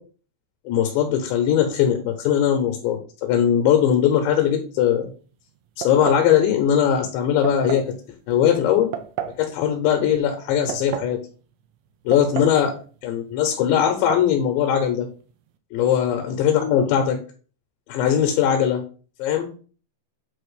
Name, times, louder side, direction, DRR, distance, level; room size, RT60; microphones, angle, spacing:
voice 1, 0.7-5.1 5.8-7.9 8.3-8.9 9.4-11.2 12.1-15.1 15.7-17.2 17.9-18.8 19.2-19.5, left 9 dB, 75° left, 4 dB, 2.9 m, -20 dB
sound 1, 5.8-6.3 7.4-7.9 8.9-9.4 10.4-11.2 12.1-12.6 12.9-13.0 13.9-14.3, right 9 dB, 80° right, 2.8 m, -32 dB
8.6 x 2.9 x 4.8 m, 0.39 s
omnidirectional pair, 5.5 m